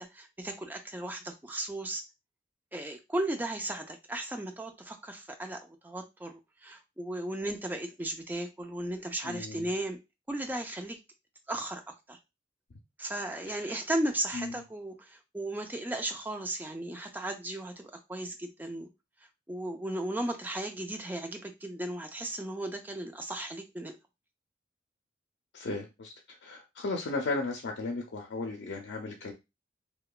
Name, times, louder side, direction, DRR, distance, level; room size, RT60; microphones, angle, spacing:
voice 1, 0.0-2.0 2.7-10.0 10.3-11.0 11.5-12.2 13.0-18.9 19.5-24.0, right 1 dB, 10° right, 0.3 m, -36 dB
voice 2, 9.2-9.7 13.5-13.8 14.3-14.5 25.5-29.3, left 3 dB, 75° left, 0.5 m, -35 dB
2.9 x 2.1 x 2.2 m
head